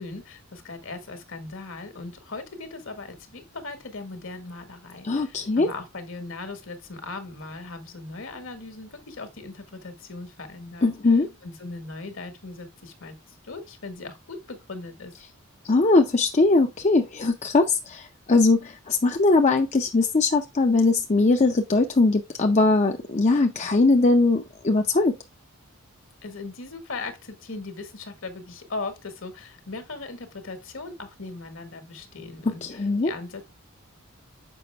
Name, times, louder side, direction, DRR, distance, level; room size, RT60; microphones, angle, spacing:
voice 1, 0.0-13.2 13.4-15.1 26.2-33.4, left 3 dB, 65° left, 1.6 m, -38 dB
voice 2, 5.0-5.7 10.8-11.3 15.6-25.2 32.6-33.1, left 3 dB, 35° left, 0.6 m, -21 dB
6.9 x 5.1 x 3.4 m
head